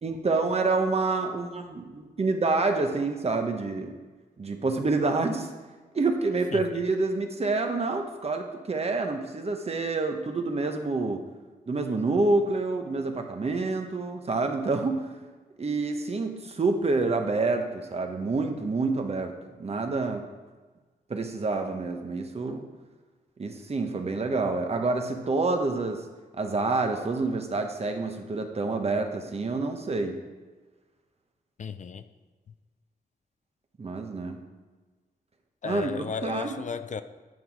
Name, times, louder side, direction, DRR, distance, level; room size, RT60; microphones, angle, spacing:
voice 1, 0.0-4.0 4.4-5.5 5.9-11.2 11.7-15.1 15.6-20.2 21.1-22.6 23.4-26.0 26.4-30.2 33.8-34.4 35.6-35.9 36.2-36.6, right 3 dB, 40° right, 5 dB, 1.0 m, -27 dB
voice 2, 31.6-32.0 35.6-37.0, left 6 dB, 50° left, 11 dB, 0.5 m, -34 dB
9.2 x 5.8 x 4.7 m, 1.3 s
cardioid pair, 85°, 16 cm